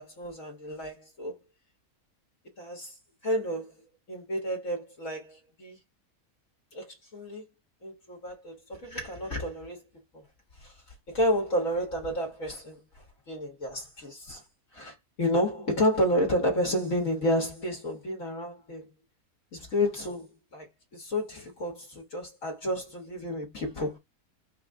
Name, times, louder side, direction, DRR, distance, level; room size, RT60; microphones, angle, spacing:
voice 1, 0.0-1.3 2.6-2.9 3.2-3.8 4.1-5.8 6.7-7.5 7.8-9.9 10.6-10.7 11.1-12.8 13.3-14.4 14.7-18.9 19.5-24.0, equal, 60° left, 1.9 m, -30 dB
4.8 x 2.2 x 3.7 m
omnidirectional pair, 1.6 m